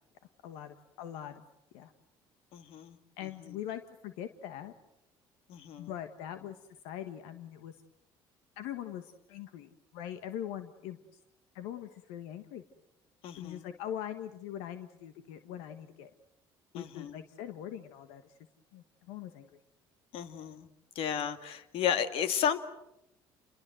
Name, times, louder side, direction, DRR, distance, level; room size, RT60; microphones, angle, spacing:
voice 1, 0.4-1.4 1.7-1.9 3.2-4.7 5.8-6.6 6.8-7.8 8.6-11.0 11.5-12.6 13.4-16.1 16.7-18.2 18.7-19.6, left 10 dB, 90° left, 8 dB, 1.5 m, -42 dB
voice 2, 2.5-3.0 5.5-5.9 13.2-13.7 16.7-17.2 20.1-20.7 21.0-22.6, left 8 dB, 70° left, 9 dB, 2.3 m, -33 dB
30.0 x 22.5 x 7.9 m, 0.88 s
cardioid pair, 95°, 10 cm